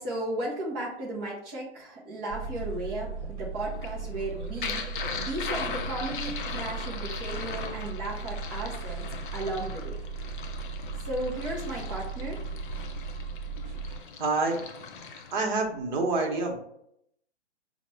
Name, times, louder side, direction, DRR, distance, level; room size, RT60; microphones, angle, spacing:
voice 1, 0.0-4.8 5.1-9.1 9.3-10.0 11.0-12.4, right 1 dB, 15° right, -6 dB, 0.4 m, -35 dB
sound 1, 2.3-14.0, right 5 dB, 70° right, 0.9 m, -37 dB
sound 2, 3.7-15.5, left 6 dB, 45° left, 0.5 m, -39 dB
voice 2, 14.2-14.6 15.1-16.6, right 3 dB, 40° right, 1 dB, 0.9 m, -27 dB
4.0 x 2.1 x 4.5 m, 0.73 s
hypercardioid pair, 130°, 35 cm